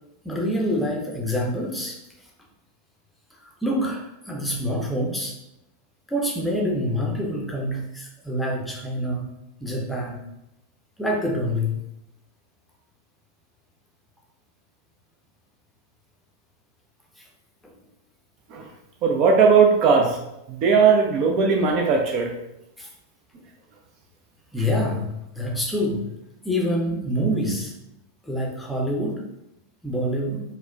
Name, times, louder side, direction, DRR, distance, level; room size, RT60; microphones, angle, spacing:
voice 1, 0.2-2.0 3.6-5.3 6.1-9.3 9.6-10.2 11.0-11.7 22.8-22.9 24.5-26.1 26.4-27.7 28.2-29.2 29.8-30.4, equal, 5° left, -1 dB, 0.6 m, -26 dB
voice 2, 19.0-20.2 20.5-22.3, right 5 dB, 40° right, 1 dB, 0.4 m, -18 dB
4.2 x 2.1 x 2.3 m, 0.87 s
figure-of-eight pair, 90°, 0 cm